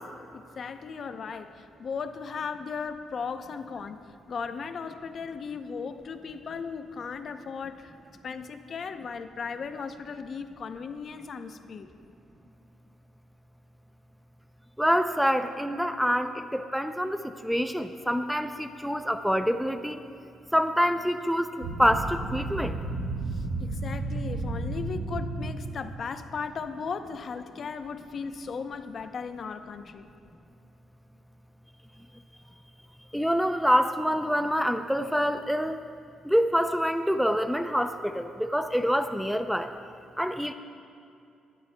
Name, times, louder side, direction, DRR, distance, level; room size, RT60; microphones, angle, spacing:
voice 1, 0.3-4.0 4.3-7.9 8.2-11.9 23.3-30.1, left 5 dB, 50° left, 9 dB, 0.7 m, -37 dB
voice 2, 14.8-20.0 20.5-22.8 33.1-35.8 36.3-39.7 40.2-40.5, equal, ahead, 9 dB, 0.4 m, -26 dB
sound 1, 21.6-25.8, right 2 dB, 70° right, 1.0 m, -32 dB
23.5 x 11.5 x 2.2 m, 2.5 s
cardioid pair, 90°, 0 cm